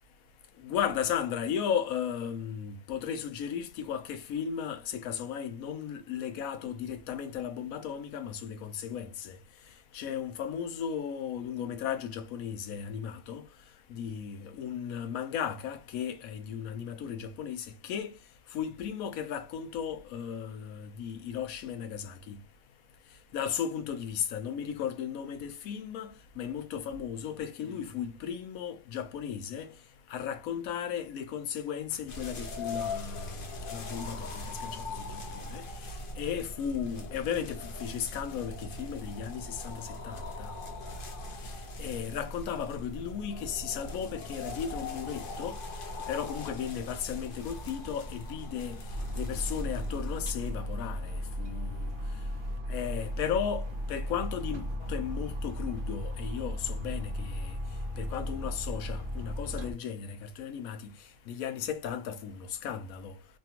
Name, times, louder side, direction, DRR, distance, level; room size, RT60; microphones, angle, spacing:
voice 1, 0.6-9.1 9.9-13.4 13.9-18.1 18.5-22.4 23.3-26.1 26.4-29.7 30.1-33.3 33.7-34.8 35.5-35.6 36.2-39.7 40.0-40.5 41.8-45.6 46.1-48.8 49.2-51.1 51.4-51.8 52.7-54.6 54.9-57.3 58.0-60.8 61.3-62.3 62.6-63.1, left 8 dB, 90° left, 1.0 m, -35 dB
sound 1, 32.1-50.5, left 2 dB, 50° left, 0.7 m, -40 dB
sound 2, 48.9-59.7, equal, 45° right, 0.8 m, -35 dB
3.3 x 2.3 x 2.8 m
omnidirectional pair, 1.4 m